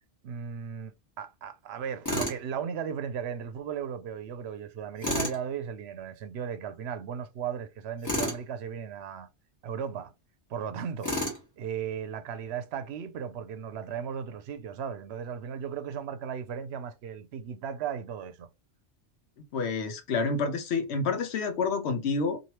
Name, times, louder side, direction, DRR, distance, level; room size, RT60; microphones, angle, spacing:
voice 1, 0.2-9.3 9.6-10.1 10.5-11.1 11.6-18.5, right 7 dB, 70° right, 0.8 m, -36 dB
Tools, 2.1-2.4 5.0-5.4 8.0-8.4 11.0-11.4, left 1 dB, 15° left, 1.2 m, -30 dB
voice 2, 19.5-22.4, left 4 dB, 70° left, 0.9 m, -28 dB
3.1 x 2.6 x 2.8 m
omnidirectional pair, 1.2 m